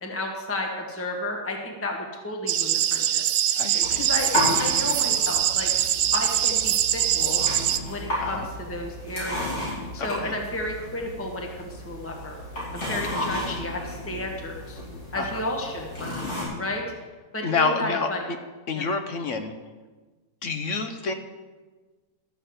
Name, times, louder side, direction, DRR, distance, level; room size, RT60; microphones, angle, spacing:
voice 1, 0.0-4.3 4.6-5.7 6.1-7.5 7.9-12.4 12.7-14.8 15.1-16.1 16.6-16.8 17.3-18.2 18.7-18.9, left 1 dB, 10° left, 1 dB, 1.3 m, -32 dB
sound 1, 2.5-7.8, right 11 dB, 90° right, 1.2 m, -23 dB
voice 2, 3.6-4.0 8.2-8.5 10.0-10.4 12.9-13.3 15.1-15.4 17.4-18.1 18.7-19.5 20.4-21.1, left 4 dB, 60° left, 7 dB, 1.1 m, -28 dB
sound 2, 3.8-16.4, left 1 dB, 85° left, 5.1 m, -33 dB
13.0 x 6.6 x 7.9 m, 1.3 s
omnidirectional pair, 1.6 m